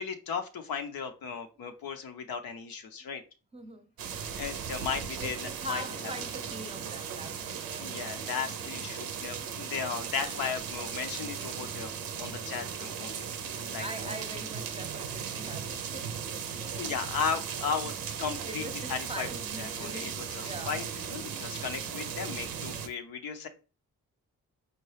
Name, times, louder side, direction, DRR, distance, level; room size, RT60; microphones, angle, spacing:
voice 1, 0.0-3.2 4.3-5.8 7.8-14.1 16.0-16.1 16.7-17.9 18.2-18.6 18.9-19.3 19.6-20.8 21.1-23.5, left 6 dB, 85° left, 0.7 m, -36 dB
voice 2, 3.5-3.9 5.2-7.9 13.8-17.0 18.5-20.9, right 1 dB, 15° right, 0.6 m, -42 dB
sound 1, 4.0-22.9, right 7 dB, 85° right, 0.6 m, -37 dB
4.3 x 2.2 x 3.2 m
supercardioid pair, 45°, 35 cm